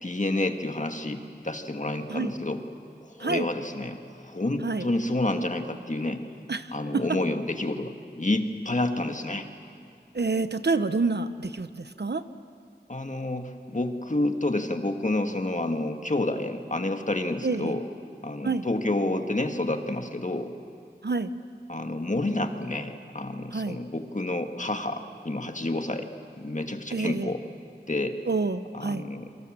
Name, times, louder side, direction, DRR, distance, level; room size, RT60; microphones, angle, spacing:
voice 1, 0.0-2.6 3.0-6.2 6.7-9.5 12.9-17.9 18.2-20.5 21.7-26.1 26.4-27.4 27.9-28.2 28.7-29.3, left 2 dB, 45° left, 5 dB, 1.8 m, -29 dB
voice 2, 10.1-11.7 12.0-12.2 17.4-17.7 18.4-18.6 21.0-21.3 23.5-23.8 26.9-27.3 28.3-29.0, right 3 dB, 65° right, 11 dB, 0.9 m, -27 dB
29.5 x 24.0 x 7.5 m, 2.3 s
wide cardioid pair, 50°, 18 cm